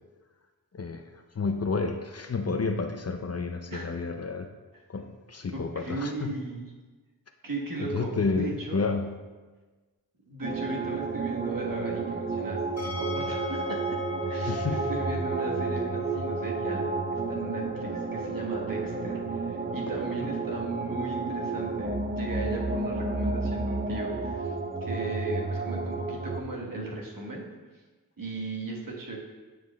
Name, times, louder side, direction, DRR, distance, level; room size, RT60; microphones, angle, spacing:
voice 1, 1.4-4.5 4.9-6.3 7.8-9.1 14.4-14.8, left 4 dB, 40° left, 6 dB, 0.5 m, -30 dB
voice 2, 5.5-6.7 7.4-8.8 10.3-14.0 14.2-24.5 24.8-27.4 28.2-29.2, right 2 dB, 60° right, -2 dB, 1.4 m, -37 dB
sound 1, 10.4-26.4, right 3 dB, 25° right, 0.5 m, -31 dB
sound 2, 12.8-25.7, left 3 dB, 80° left, 2.0 m, -42 dB
9.3 x 4.9 x 2.3 m, 1.3 s
cardioid pair, 45°, 38 cm